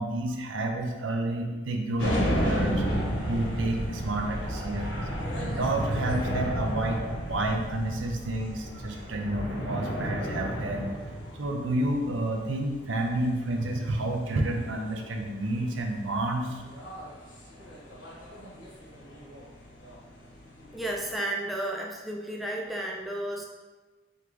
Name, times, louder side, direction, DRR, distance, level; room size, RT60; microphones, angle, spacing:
voice 1, 0.0-2.8 3.3-5.1 5.4-7.0 7.3-10.9 11.3-16.6, right 1 dB, 85° right, 3 dB, 0.6 m, -30 dB
sound 1, 2.0-21.1, equal, 75° left, 1.3 m, -33 dB
voice 2, 20.7-23.5, right 1 dB, ahead, -2 dB, 0.4 m, -32 dB
3.6 x 3.5 x 3.2 m, 1.3 s
head